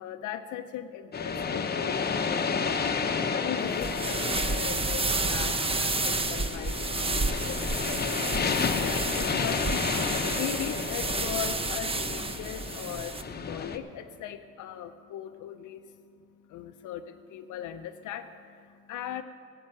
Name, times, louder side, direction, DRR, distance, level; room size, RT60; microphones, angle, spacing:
voice 1, 0.0-19.2, left 10 dB, 80° left, 6 dB, 0.5 m, -39 dB
sound 1, 1.1-13.8, left 5 dB, 35° left, 0.8 m, -31 dB
sound 2, 3.7-13.2, right 3 dB, 20° right, 0.7 m, -31 dB
11.5 x 8.8 x 7.7 m, 2.4 s
cardioid pair, 90°, 30 cm